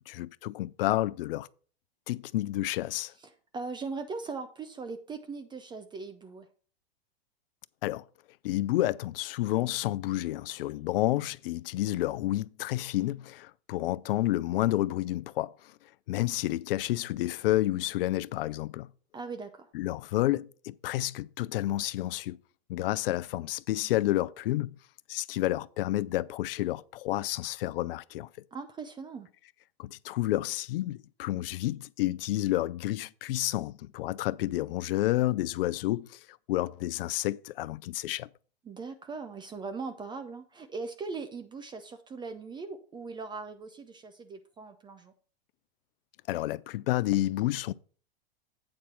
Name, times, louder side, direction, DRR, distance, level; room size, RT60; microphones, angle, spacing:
voice 1, 0.1-1.5 2.1-3.1 7.8-8.0 8.4-15.7 16.1-18.9 19.7-22.4 22.7-24.7 25.1-28.3 29.8-36.2 36.5-38.3 46.3-47.7, left 15 dB, 65° left, 0.5 m, -30 dB
voice 2, 3.2-6.5 19.1-19.7 28.5-29.3 38.6-45.1, right 4 dB, 15° right, 0.6 m, -40 dB
8.8 x 4.3 x 6.1 m
hypercardioid pair, 120°, 31 cm